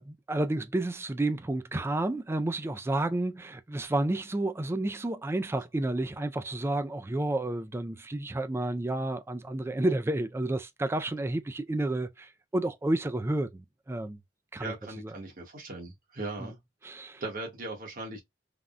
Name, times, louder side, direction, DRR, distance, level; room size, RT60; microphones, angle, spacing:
voice 1, 0.0-14.2 14.5-15.1 16.4-16.5 16.8-17.2, right 2 dB, 15° right, 0.3 m, -31 dB
voice 2, 14.6-16.6 17.2-18.2, right 2 dB, 50° right, 1.3 m, -38 dB
3.4 x 2.1 x 2.5 m
head